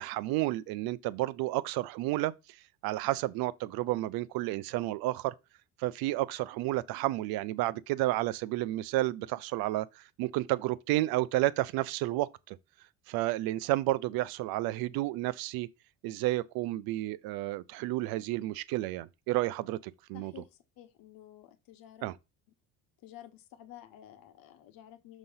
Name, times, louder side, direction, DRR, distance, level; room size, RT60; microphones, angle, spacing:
voice 1, 0.0-2.3 2.8-5.3 5.8-12.6 13.1-15.7 16.0-20.3 22.0-22.1, right 17 dB, 70° right, 0.6 m, -31 dB
voice 2, 20.1-22.1 23.0-25.2, left 11 dB, 65° left, 1.1 m, -52 dB
6.4 x 3.0 x 5.5 m
supercardioid pair, 105°, 38 cm